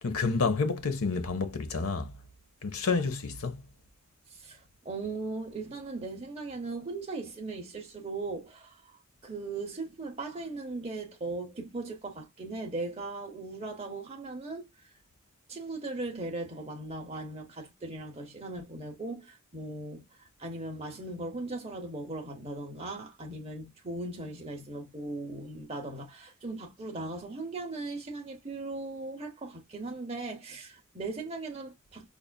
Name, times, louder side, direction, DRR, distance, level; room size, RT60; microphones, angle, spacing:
voice 1, 0.0-2.1 2.6-3.6, left 4 dB, 80° left, 0.7 m, -29 dB
voice 2, 4.3-8.8 9.2-14.9 15.5-32.1, right 2 dB, 30° right, 0.7 m, -38 dB
5.3 x 2.4 x 2.2 m
head